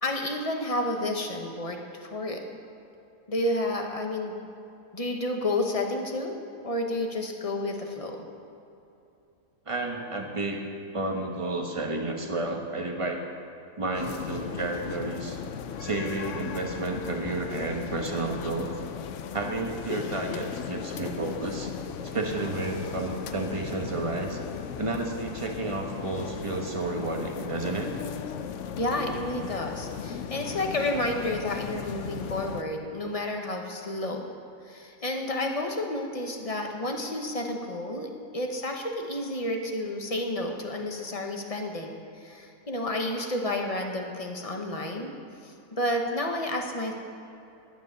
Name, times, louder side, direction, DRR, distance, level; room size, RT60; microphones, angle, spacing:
voice 1, 0.0-2.4 3.3-4.3 4.9-6.4 6.6-8.3 28.8-34.3 34.7-45.1 45.4-46.9, left 1 dB, 25° left, 2 dB, 1.0 m, -31 dB
voice 2, 9.7-10.6 10.9-13.2 13.8-15.4 15.8-18.7 19.3-21.7 22.0-24.4 24.8-27.9, right 2 dB, 20° right, 2 dB, 1.1 m, -31 dB
sound 1, 13.9-32.6, left 7 dB, 65° left, 0.8 m, -37 dB
12.0 x 9.4 x 6.9 m, 2.7 s
omnidirectional pair, 1.7 m